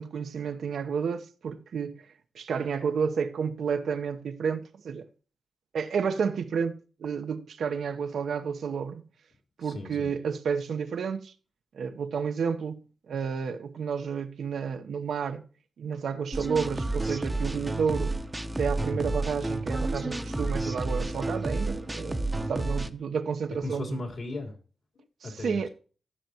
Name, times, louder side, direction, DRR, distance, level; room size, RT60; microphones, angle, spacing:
voice 1, 0.0-2.0 2.3-5.1 5.7-9.0 9.6-11.3 11.7-15.4 15.8-18.1 18.5-24.0 25.4-25.7, right 6 dB, 85° right, 0.9 m, -31 dB
voice 2, 9.6-10.1 18.8-19.1 22.3-22.7 23.6-24.6 24.9-25.7, left 2 dB, 65° left, 3.8 m, -38 dB
sound 1, 16.3-22.9, right 2 dB, 20° right, 0.8 m, -31 dB
15.0 x 6.8 x 3.0 m
cardioid pair, 80°, 0 cm